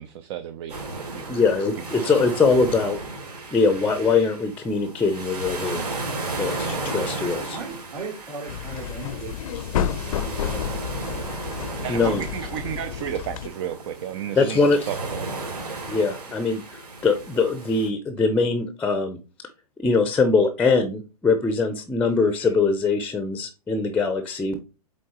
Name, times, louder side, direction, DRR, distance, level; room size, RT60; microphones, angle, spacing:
voice 1, 0.0-1.4 11.8-14.6 14.9-15.3, right 10 dB, 45° right, 0.6 m, -32 dB
sound 1, 0.7-17.9, right 3 dB, 85° right, 3.8 m, -34 dB
voice 2, 1.3-3.0 3.5-5.9 6.4-7.6 11.9-12.2 14.4-14.9 15.9-19.5 19.8-24.6, left 4 dB, 10° left, 0.6 m, -22 dB
voice 3, 1.9-2.3 7.4-9.4 9.9-11.5 11.9-12.2, right 4 dB, 65° right, 3.1 m, -38 dB
sound 2, 8.5-13.5, left 9 dB, 60° left, 0.6 m, -30 dB
8.4 x 3.8 x 3.0 m
hypercardioid pair, 120°, 20 cm